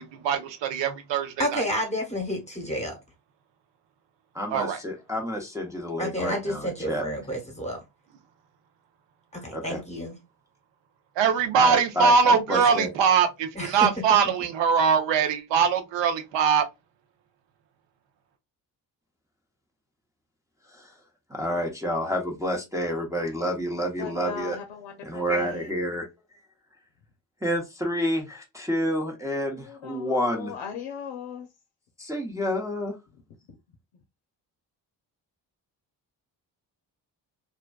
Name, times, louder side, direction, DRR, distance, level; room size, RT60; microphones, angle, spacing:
voice 1, 0.0-1.6 4.5-4.8 11.2-16.6, right 6 dB, 75° right, 0.7 m, -22 dB
voice 2, 1.4-3.0 6.0-7.8 9.3-10.2 13.5-14.3, equal, 15° left, 1.0 m, -30 dB
voice 3, 4.3-7.0 9.5-9.8 11.6-12.9 20.8-20.9 21.3-24.6 25.0-26.1 27.4-30.5 32.0-33.0, equal, 5° right, 0.7 m, -29 dB
voice 4, 24.0-24.9 25.3-25.6 29.7-31.5, left 7 dB, 80° left, 0.6 m, -37 dB
2.5 x 2.2 x 2.2 m
supercardioid pair, 55°, 44 cm